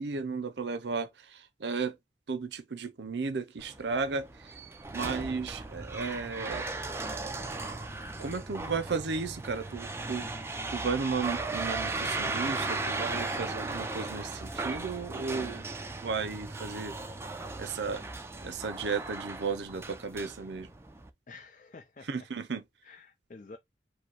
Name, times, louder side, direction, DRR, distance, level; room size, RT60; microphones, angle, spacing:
voice 1, 0.0-2.0 2.3-4.6 4.9-6.7 8.2-10.3 10.7-15.7 16.0-17.0 17.6-18.0 18.4-20.7 22.1-22.6, right 4 dB, 75° right, 0.6 m, -34 dB
sound 1, 3.6-21.1, right 3 dB, 15° right, 0.5 m, -37 dB
voice 2, 21.3-22.3 22.8-23.6, left 3 dB, 45° left, 0.5 m, -50 dB
5.0 x 2.2 x 4.6 m
head